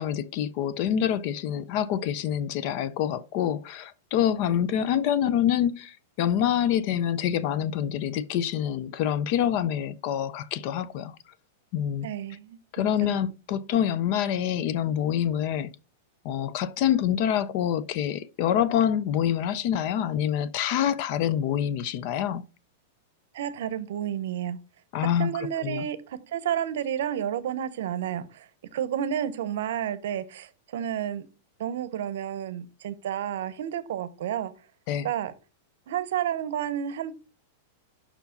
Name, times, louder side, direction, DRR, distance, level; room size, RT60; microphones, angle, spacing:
voice 1, 0.0-11.1 11.7-12.1 12.7-15.7 16.2-22.4 24.9-25.3 25.6-25.9 34.9-35.1, left 10 dB, 35° left, 0.4 m, -26 dB
voice 2, 12.0-12.6 13.0-13.2 13.7-13.9 23.3-24.6 25.2-31.3 31.6-34.5 35.0-35.3 35.9-37.1, right 10 dB, 60° right, 0.8 m, -31 dB
5.7 x 4.7 x 5.1 m
supercardioid pair, 175°, 0 cm